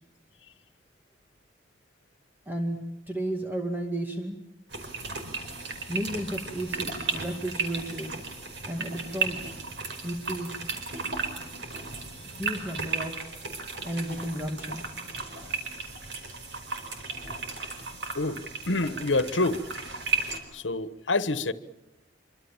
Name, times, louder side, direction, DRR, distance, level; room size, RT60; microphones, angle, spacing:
voice 1, 2.5-2.8 3.1-4.4 5.9-8.1 8.7-9.6 10.0-10.5 12.3-13.2 13.8-15.4, right 1 dB, 10° right, 4 dB, 2.2 m, -33 dB
sound 1, 4.7-20.4, right 4 dB, 65° right, 4.9 m, -35 dB
voice 2, 18.1-19.7 20.1-20.3 20.5-21.5, left 2 dB, 90° left, 15 dB, 1.4 m, -27 dB
26.0 x 25.0 x 7.4 m, 0.93 s
head